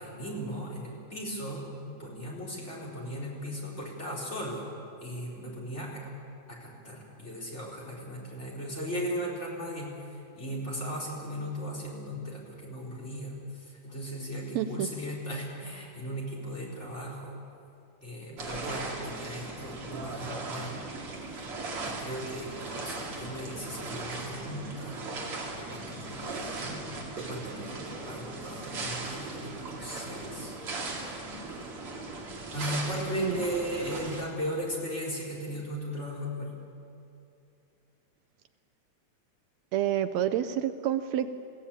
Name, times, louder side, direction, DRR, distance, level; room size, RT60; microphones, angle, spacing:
voice 1, 0.0-4.7 5.0-6.1 6.5-17.3 18.0-20.8 21.8-25.0 25.5-26.8 27.1-30.6 32.5-36.6, equal, 20° left, -3 dB, 4.0 m, -37 dB
voice 2, 14.5-14.9 33.1-33.5 39.7-41.3, right 11 dB, 80° right, 11 dB, 1.7 m, -28 dB
sound 1, 18.4-34.2, right 3 dB, 45° right, 3.2 m, -38 dB
21.5 x 15.5 x 8.8 m, 2.6 s
omnidirectional pair, 3.6 m